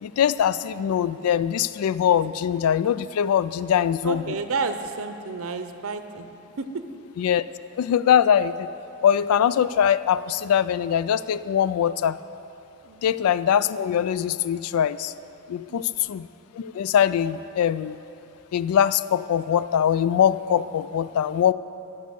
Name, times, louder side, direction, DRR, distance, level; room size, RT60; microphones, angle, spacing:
voice 1, 0.0-4.4 7.2-7.4 7.8-8.7 9.0-12.2 13.0-15.1 15.5-16.3 16.6-18.0 18.5-21.5, left 9 dB, 90° left, 17 dB, 0.3 m, -22 dB
voice 2, 4.0-6.3 6.6-6.8 12.8-13.2 15.7-16.0, right 4 dB, 70° right, 9 dB, 0.6 m, -31 dB
12.5 x 5.5 x 6.9 m, 3.0 s
head